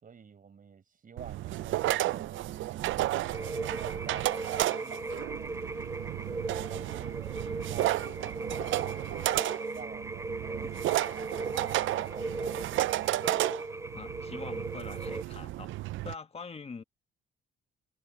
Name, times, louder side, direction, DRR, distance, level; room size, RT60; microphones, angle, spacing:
voice 1, 0.0-2.9 3.4-4.4 4.8-5.2 9.7-12.8, right 6 dB, 45° right, 5.0 m, -50 dB
sound 1, 1.2-16.1, right 16 dB, 80° right, 0.5 m, -33 dB
sound 2, 1.5-13.4, right 8 dB, 60° right, 4.0 m, -50 dB
sound 3, 3.3-15.2, right 2 dB, 15° right, 2.8 m, -38 dB
voice 2, 13.9-15.7 16.0-16.8, left 5 dB, 30° left, 1.6 m, -43 dB
cardioid pair, 90°, 20 cm